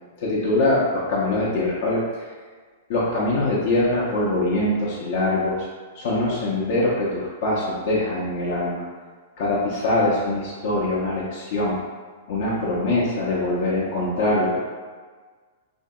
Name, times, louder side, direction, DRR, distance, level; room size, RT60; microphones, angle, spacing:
voice 1, 0.2-2.3 2.9-5.7 5.9-8.8 9.4-11.8 12.3-14.6, left 2 dB, 50° left, -6 dB, 0.6 m, -23 dB
3.3 x 2.6 x 2.2 m, 1.5 s
figure-of-eight pair, 100°, 0 cm